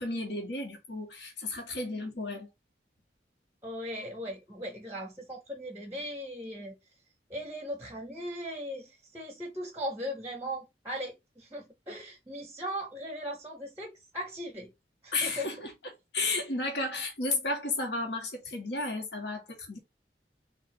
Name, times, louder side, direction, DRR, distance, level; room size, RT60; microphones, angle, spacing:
voice 1, 0.0-2.5 15.1-15.7 16.1-19.8, left 2 dB, 85° left, 1.3 m, -33 dB
voice 2, 3.6-6.7 7.3-14.7 15.0-15.5, equal, 15° right, 0.6 m, -38 dB
3.8 x 2.4 x 3.8 m
head